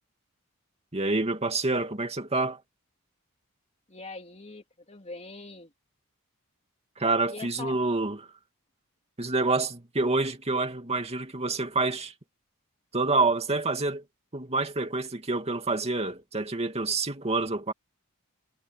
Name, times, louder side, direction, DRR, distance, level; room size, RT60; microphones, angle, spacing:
voice 1, 0.9-2.6 7.0-8.3 9.2-12.1 12.9-14.0 14.3-17.7, right 3 dB, 30° right, 2.4 m, -27 dB
voice 2, 3.9-5.7 7.3-7.9, left 3 dB, 30° left, 3.2 m, -43 dB
head